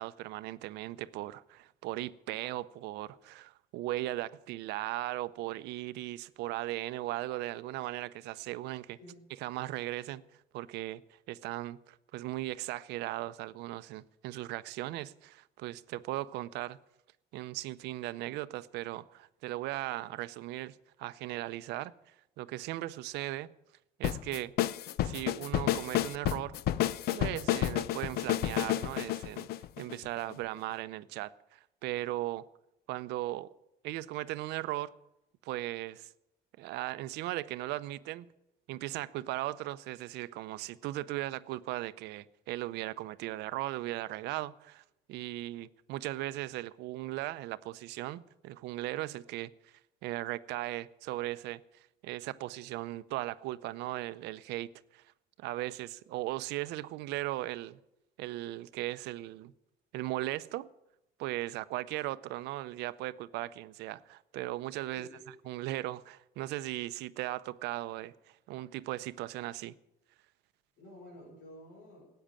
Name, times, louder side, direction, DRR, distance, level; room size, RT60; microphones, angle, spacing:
voice 1, 0.0-9.0 9.4-10.2 10.5-16.8 17.3-23.5 24.0-24.5 25.0-26.6 27.1-29.5 29.8-32.4 32.9-33.5 33.8-34.9 35.4-36.1 36.6-38.3 38.7-49.7 50.0-55.0 55.4-57.8 58.2-59.5 59.9-60.7 61.2-65.1 65.5-69.7, right 16 dB, 90° right, 0.6 m, -38 dB
sound 1, 24.0-30.3, left 13 dB, 70° left, 0.6 m, -31 dB
voice 2, 64.9-65.6 70.8-72.1, left 1 dB, 85° left, 5.2 m, -51 dB
13.5 x 8.7 x 8.8 m
cardioid pair, 110°, 17 cm